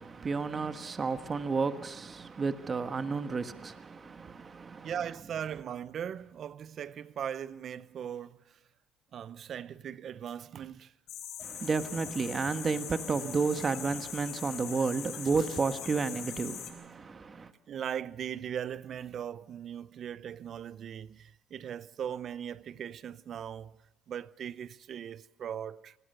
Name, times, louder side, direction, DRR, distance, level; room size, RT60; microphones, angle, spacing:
voice 1, 0.0-4.9 11.4-17.5, right 4 dB, 30° right, 1.4 m, -32 dB
voice 2, 4.8-8.6 9.1-10.9 17.7-23.8 24.1-25.9, right 9 dB, 50° right, 0.7 m, -39 dB
sound 1, 11.1-16.7, left 10 dB, 65° left, 4.1 m, -42 dB
26.0 x 19.5 x 6.8 m
cardioid pair, 95°, 0 cm